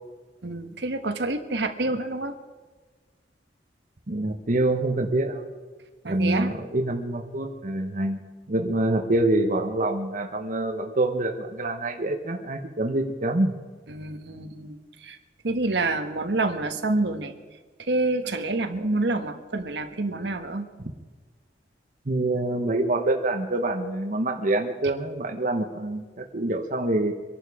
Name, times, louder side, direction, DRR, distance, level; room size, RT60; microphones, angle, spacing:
voice 1, 0.4-2.3 6.0-6.5 13.9-15.2 15.4-17.3 17.8-20.7, right 2 dB, 70° right, 7 dB, 1.3 m, -27 dB
voice 2, 4.1-5.5 6.1-8.2 8.5-13.5 22.1-27.1, right 2 dB, 45° right, 4 dB, 1.1 m, -26 dB
24.5 x 11.5 x 4.9 m, 1.4 s
head